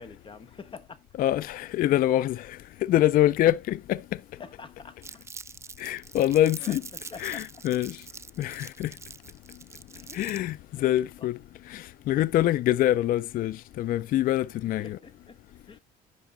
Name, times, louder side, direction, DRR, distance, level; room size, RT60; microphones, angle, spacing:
voice 1, 0.0-1.0 4.4-5.3 6.6-7.4 9.9-10.5 10.7-10.9 14.8-15.4 15.7-15.8, left 5 dB, 30° left, 1.2 m, -46 dB
voice 2, 1.2-4.0 5.8-6.8 7.2-8.0 8.4-8.9 10.1-11.4 11.7-15.0, left 13 dB, 55° left, 0.4 m, -25 dB
Crumpling crinkling, 5.0-10.5, right 4 dB, 15° right, 0.4 m, -44 dB
10.5 x 5.5 x 3.8 m
cardioid pair, 110°, 17 cm